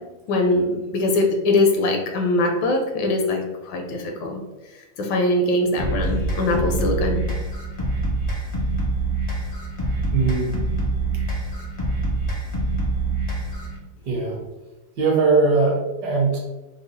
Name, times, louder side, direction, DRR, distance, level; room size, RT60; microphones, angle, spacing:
voice 1, 0.3-4.4 5.0-7.2, left 2 dB, 80° left, 3 dB, 1.2 m, -22 dB
sound 1, 5.8-13.8, right 2 dB, 55° left, 0.4 m, -25 dB
voice 2, 10.1-10.5 14.0-14.4 15.0-16.4, right 4 dB, 65° right, -1 dB, 1.3 m, -20 dB
4.9 x 2.0 x 2.6 m, 1.1 s
omnidirectional pair, 2.1 m